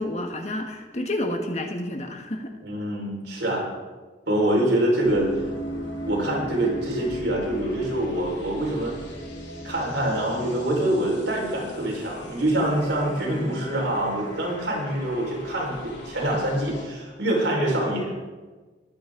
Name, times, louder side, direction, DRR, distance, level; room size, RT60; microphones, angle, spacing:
voice 1, 0.0-2.5 13.1-13.7, left 1 dB, 40° left, 4 dB, 1.5 m, -30 dB
voice 2, 2.6-3.7 4.3-5.3 6.0-8.9 9.6-18.1, right 1 dB, 75° right, -2 dB, 4.9 m, -25 dB
sound 1, 5.0-16.9, equal, 75° left, 3.2 m, -37 dB
21.0 x 10.0 x 3.8 m, 1.3 s
head